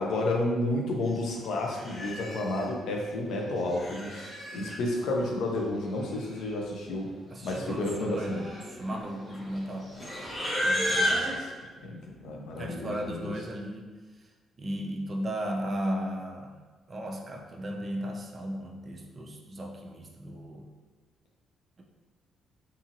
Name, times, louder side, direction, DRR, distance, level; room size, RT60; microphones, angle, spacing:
voice 1, 0.0-7.1 7.4-8.4 10.9-11.5 11.8-13.3, left 2 dB, 75° left, 0 dB, 0.5 m, -31 dB
Livestock farm animals working animals, 1.1-1.3 1.7-2.6 3.5-4.8 5.8-5.9 6.1-6.6 6.9-7.1 7.8-11.4, equal, 25° left, 0.8 m, -33 dB
voice 2, 7.3-10.2 10.6-11.3 12.6-13.9 14.6-16.6 16.9-20.7, equal, 35° right, 1 dB, 0.4 m, -36 dB
2.7 x 2.7 x 2.6 m, 1.3 s
cardioid pair, 90°, 0 cm